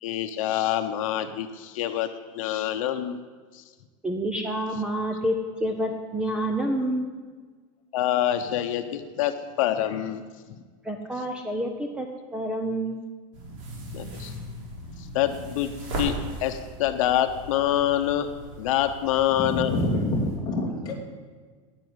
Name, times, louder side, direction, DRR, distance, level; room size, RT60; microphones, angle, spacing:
voice 1, 0.0-2.1 2.3-3.2 3.5-3.6 7.9-10.2 10.5-10.6 13.9-14.3 15.0-16.1 16.4-18.3 18.6-19.7, left 12 dB, 70° left, 7 dB, 0.9 m, -26 dB
voice 2, 4.0-5.3 5.6-7.1 10.8-12.1 12.3-13.0, right 1 dB, 5° right, 4 dB, 0.7 m, -28 dB
sound 1, 13.3-20.4, right 1 dB, 65° right, 4.4 m, -38 dB
voice 3, 19.3-20.9, left 1 dB, 20° left, -2 dB, 2.5 m, -27 dB
10.0 x 9.7 x 9.7 m, 1.5 s
supercardioid pair, 175°, 17 cm